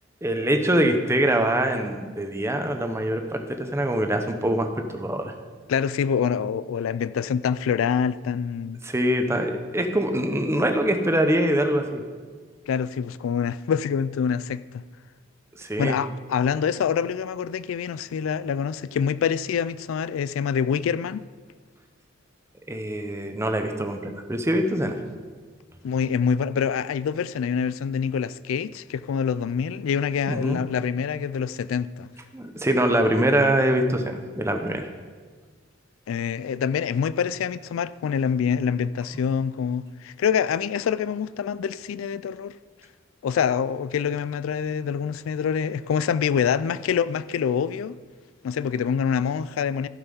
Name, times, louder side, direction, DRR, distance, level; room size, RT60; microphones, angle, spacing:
voice 1, 0.2-5.3 8.8-12.0 15.6-16.0 22.7-25.0 30.3-30.6 32.3-34.9, right 1 dB, 15° right, 0.8 m, -24 dB
voice 2, 5.7-8.8 12.7-14.8 15.8-21.2 25.8-32.1 36.1-42.5 43.2-48.0 48.4-49.9, left 7 dB, 75° left, 0.3 m, -26 dB
14.5 x 5.7 x 5.5 m
head